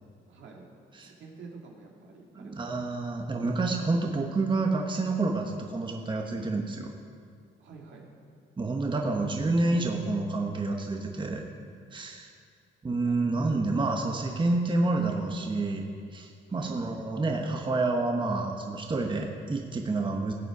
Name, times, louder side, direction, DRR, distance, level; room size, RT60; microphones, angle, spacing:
voice 1, 0.3-0.7 1.0-2.5 7.6-8.0 9.1-9.3 13.0-13.7 16.5-16.8, right 4 dB, 70° right, -1 dB, 2.2 m, -49 dB
voice 2, 2.3-6.9 8.6-11.4 11.9-12.3 12.8-15.9 16.1-20.3, right 3 dB, 25° right, 2 dB, 1.0 m, -28 dB
16.0 x 8.0 x 4.9 m, 2.2 s
cardioid pair, 90°, 20 cm